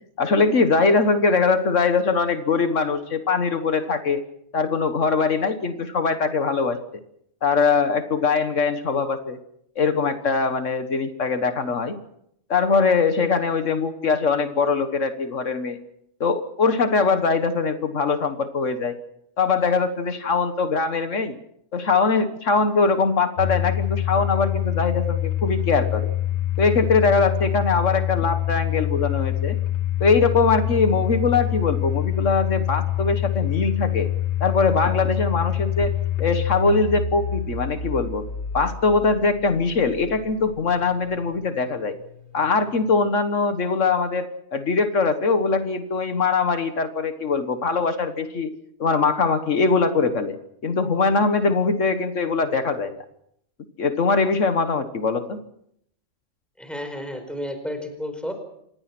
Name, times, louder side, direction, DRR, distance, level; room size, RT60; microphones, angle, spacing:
voice 1, 0.2-4.2 4.5-6.8 7.4-9.4 9.8-12.0 12.5-15.8 16.2-19.0 19.4-21.4 21.7-26.1 26.6-29.6 30.0-34.1 34.4-35.9 36.2-38.2 38.5-42.0 42.3-48.5 48.8-50.4 50.6-52.9 53.8-55.4, left 4 dB, 75° left, 9 dB, 1.8 m, -22 dB
Domestic sounds home sounds, 23.4-40.3, left 11 dB, 60° left, 1.9 m, -26 dB
voice 2, 56.6-58.3, equal, ahead, 6 dB, 4.7 m, -32 dB
27.0 x 20.0 x 6.1 m, 0.73 s
omnidirectional pair, 1.3 m